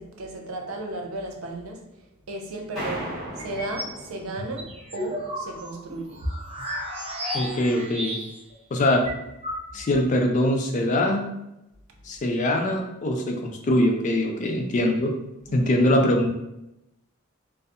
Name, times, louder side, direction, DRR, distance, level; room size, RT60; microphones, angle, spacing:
voice 1, 0.0-1.8 2.3-6.2 15.5-15.7, right 2 dB, 80° right, 2 dB, 0.5 m, -35 dB
sound 1, 2.8-5.2, equal, ahead, 0.9 m, -36 dB
sound 2, 3.4-4.0 4.4-8.5 8.8-8.9 9.1-10.0, equal, 30° right, 0.5 m, -33 dB
voice 2, 7.3-8.2 8.7-9.1 9.7-11.3 12.1-15.1 15.5-16.3, left 1 dB, 35° left, 3 dB, 0.3 m, -22 dB
2.6 x 2.1 x 2.4 m, 0.88 s
head